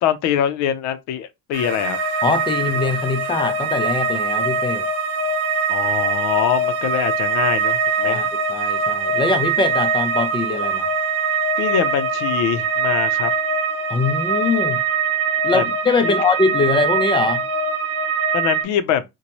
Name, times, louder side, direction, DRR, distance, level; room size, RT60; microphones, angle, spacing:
voice 1, 0.0-2.0 5.7-8.3 11.6-13.3 15.5-15.6 16.0-16.2 18.3-19.0, left 9 dB, 70° left, 0.6 m, -23 dB
sound 1, 1.5-18.6, right 5 dB, 55° right, 0.8 m, -22 dB
voice 2, 2.2-4.9 8.0-8.2 8.5-10.9 13.9-14.8 15.4-17.4, left 4 dB, 15° left, 0.4 m, -22 dB
4.0 x 2.2 x 2.9 m
cardioid pair, 130°, 29 cm